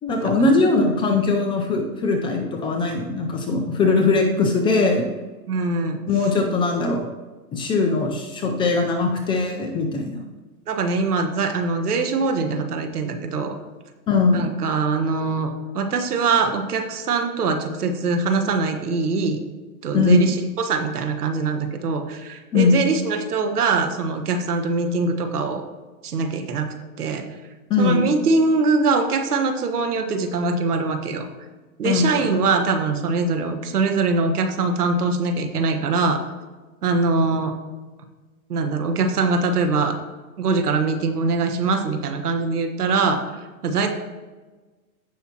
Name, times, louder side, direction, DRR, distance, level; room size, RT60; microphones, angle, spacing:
voice 1, 0.0-5.1 6.1-7.0 7.5-10.2 14.1-14.5 19.9-20.3 22.5-22.8 27.7-28.0 31.8-32.3, left 3 dB, 10° left, 3 dB, 0.4 m, -20 dB
voice 2, 5.5-6.0 10.7-13.6 14.3-19.4 19.8-25.6 26.0-26.7 27.0-27.2 27.8-31.3 31.8-36.2 36.8-37.5 38.5-40.0 40.4-43.9, right 4 dB, 85° right, 6 dB, 1.4 m, -23 dB
16.0 x 5.7 x 2.9 m, 1.3 s
hypercardioid pair, 130°, 45 cm